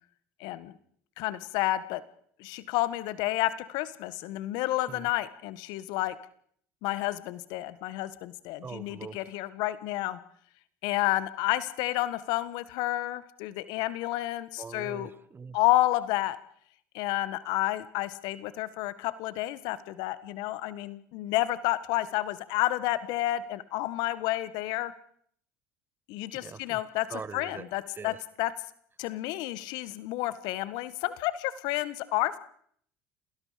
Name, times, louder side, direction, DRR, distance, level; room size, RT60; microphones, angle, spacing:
voice 1, 0.4-0.7 1.2-2.0 2.4-6.1 6.8-10.2 10.8-15.1 15.5-16.4 16.9-24.9 26.1-28.5 29.0-32.4, left 16 dB, 70° left, 15 dB, 1.6 m, -30 dB
voice 2, 8.6-9.2 14.6-15.6 26.4-26.8 27.1-27.6 28.0-28.2, right 5 dB, 30° right, 18 dB, 1.2 m, -42 dB
28.0 x 19.5 x 5.2 m, 0.62 s
hypercardioid pair, 70°, 8 cm